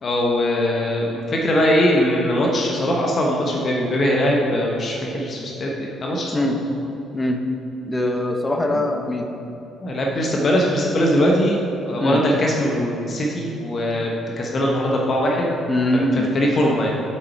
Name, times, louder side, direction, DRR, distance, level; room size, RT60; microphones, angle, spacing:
voice 1, 0.0-6.4 9.8-14.1 14.4-15.5 15.9-16.9, equal, 40° left, -1 dB, 1.2 m, -21 dB
voice 2, 7.8-9.3 12.0-12.2 15.7-16.3, left 1 dB, 20° left, 3 dB, 1.1 m, -22 dB
7.9 x 6.2 x 4.7 m, 2.9 s
figure-of-eight pair, 45°, 0 cm